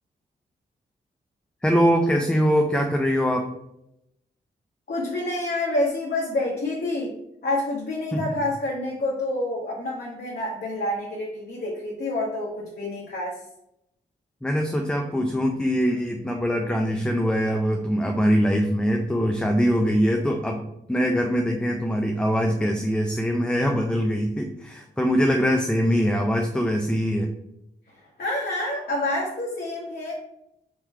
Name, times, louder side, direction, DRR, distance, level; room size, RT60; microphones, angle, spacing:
voice 1, 1.6-3.5 8.1-8.2 14.4-20.6 20.9-27.3, equal, 5° left, 2 dB, 0.6 m, -23 dB
voice 2, 4.9-7.1 7.4-13.4 28.2-30.1, left 2 dB, 55° left, -4 dB, 1.2 m, -28 dB
3.7 x 3.1 x 4.5 m, 0.82 s
cardioid pair, 50°, 19 cm